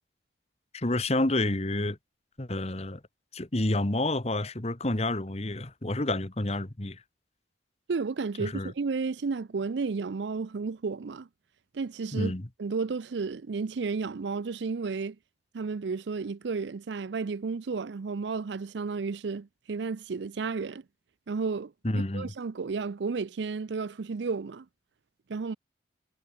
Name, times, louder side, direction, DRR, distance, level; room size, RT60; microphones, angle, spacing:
voice 1, 0.7-2.0 2.4-3.0 3.3-7.0 8.4-8.7 12.1-12.5 21.8-22.3, left 2 dB, 35° left, 1.4 m, -29 dB
voice 2, 7.9-11.3 11.7-12.3 12.6-15.2 15.5-20.8 21.3-24.7 25.3-25.6, right 4 dB, 70° right, 0.5 m, -32 dB
head